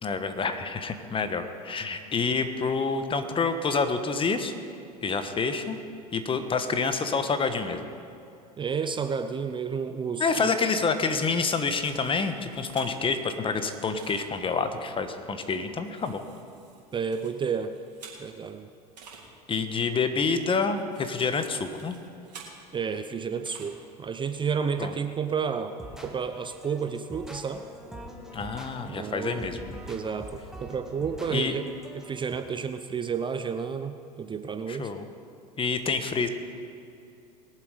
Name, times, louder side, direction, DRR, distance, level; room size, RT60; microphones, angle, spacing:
voice 1, 0.0-4.5 5.0-5.8 6.1-7.8 10.2-16.2 19.5-22.0 24.8-24.9 28.3-29.8 31.3-31.5 34.7-35.0 35.6-36.3, left 4 dB, 25° left, 9 dB, 1.2 m, -28 dB
voice 2, 8.6-10.5 16.9-17.7 18.2-18.7 22.7-25.8 26.0-27.6 28.8-29.5 29.9-31.7 31.9-34.9, right 6 dB, 25° right, 9 dB, 0.6 m, -31 dB
sound 1, 11.6-13.2 14.0-14.2 15.4-18.5 19.0-19.2 20.3-22.5 23.4-23.7, right 6 dB, 90° right, 3.3 m, -50 dB
sound 2, 25.7-32.4, equal, 5° right, 1.8 m, -44 dB
21.5 x 7.5 x 5.1 m, 2.7 s
hypercardioid pair, 90°, 20 cm